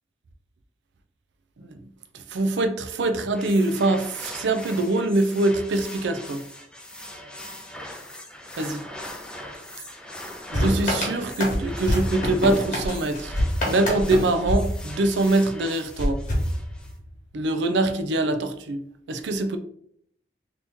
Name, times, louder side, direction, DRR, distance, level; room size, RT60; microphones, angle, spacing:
voice 1, 2.1-6.4 8.6-8.7 10.5-13.3 13.7-16.2 17.3-18.8 19.1-19.6, right 2 dB, 75° right, 8 dB, 0.4 m, -24 dB
sound 1, 3.3-16.9, left 1 dB, 5° left, 0.3 m, -40 dB
sound 2, 10.5-15.4 16.0-17.2, left 1 dB, 45° left, 1.1 m, -27 dB
2.9 x 2.8 x 3.4 m, 0.67 s
head